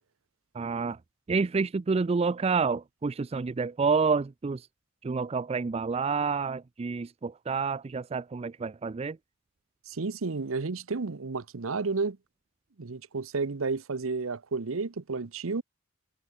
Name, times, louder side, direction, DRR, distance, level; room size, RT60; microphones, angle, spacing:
voice 1, 0.5-1.0 1.3-4.7 5.0-9.2, right 4 dB, 30° right, 0.4 m, -28 dB
voice 2, 9.9-12.2 12.8-15.6, right 4 dB, 75° right, 0.8 m, -31 dB
head